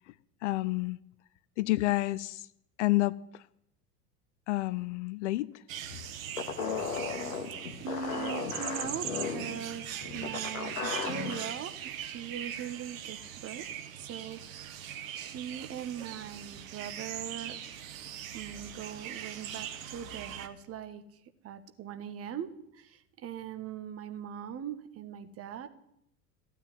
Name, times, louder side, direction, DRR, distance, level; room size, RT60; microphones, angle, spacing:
voice 1, 0.4-1.0 1.6-2.5 2.8-3.4 4.5-5.6 5.9-6.0 7.0-7.1, left 19 dB, 50° left, 17 dB, 0.7 m, -30 dB
sound 1, 5.7-20.5, right 9 dB, 55° right, 1.7 m, -41 dB
sound 2, 6.4-11.5, left 5 dB, 70° left, 2.2 m, -36 dB
voice 2, 7.8-17.6 18.3-21.0 21.4-25.7, right 8 dB, 30° right, 10 dB, 1.5 m, -41 dB
16.0 x 9.4 x 9.5 m, 0.78 s
figure-of-eight pair, 80°, 47 cm